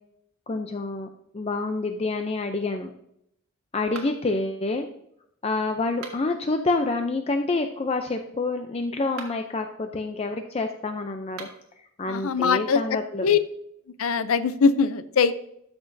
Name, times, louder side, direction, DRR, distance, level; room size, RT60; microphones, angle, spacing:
voice 1, 0.5-1.1 1.3-2.9 3.7-4.9 5.4-11.5 12.0-13.3, left 3 dB, 30° left, 6 dB, 0.4 m, -27 dB
sound 1, 3.9-4.4 5.9-6.5 9.0-9.5 11.3-11.7, right 4 dB, 90° right, 1.5 m, -42 dB
voice 2, 12.1-13.4 14.0-15.3, left 5 dB, 80° left, 13 dB, 0.5 m, -22 dB
13.0 x 6.0 x 2.6 m, 0.74 s
head